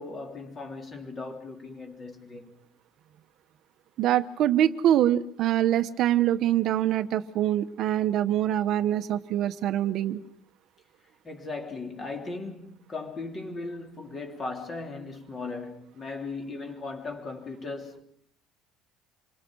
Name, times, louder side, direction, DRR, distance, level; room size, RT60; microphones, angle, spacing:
voice 1, 0.0-2.6 11.2-18.0, left 3 dB, 20° left, 3.3 m, -37 dB
voice 2, 4.0-10.2, right 12 dB, 45° right, 1.1 m, -24 dB
27.5 x 24.5 x 6.3 m
cardioid pair, 165°, 0 cm